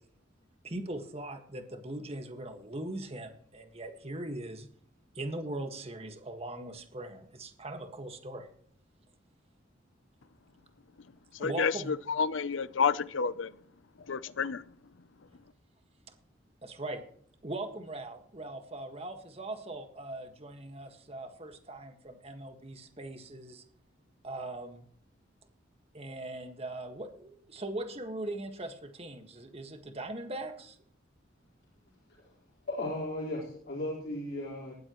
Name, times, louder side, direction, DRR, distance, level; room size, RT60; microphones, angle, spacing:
voice 1, 0.6-4.7 5.2-8.5 11.4-12.0 16.6-17.0 17.4-23.6 24.2-24.9 25.9-30.8, right 1 dB, 30° right, 1.7 m, -40 dB
voice 2, 11.4-11.7 12.2-13.5 14.1-14.6, left 5 dB, 75° left, 0.6 m, -29 dB
voice 3, 32.7-34.8, left 1 dB, 55° left, 4.6 m, -35 dB
18.5 x 13.5 x 3.1 m
head